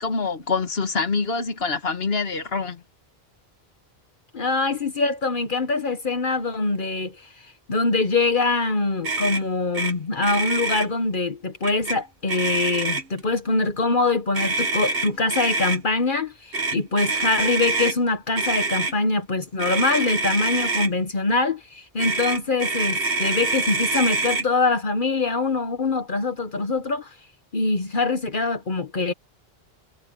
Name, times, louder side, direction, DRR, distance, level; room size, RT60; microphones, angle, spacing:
voice 1, 0.0-2.8, left 4 dB, 75° left, 1.9 m, -25 dB
voice 2, 4.3-7.3 7.7-27.1 27.5-29.1, left 3 dB, 55° left, 1.2 m, -24 dB
Motor vehicle (road), 9.0-9.4 9.7-9.9 10.2-10.9 11.6-12.0 12.3-13.2 14.3-15.8 16.5-18.0 18.4-18.9 19.6-20.9 22.0-24.5, right 3 dB, 65° right, 1.7 m, -25 dB
omnidirectional pair, 1.0 m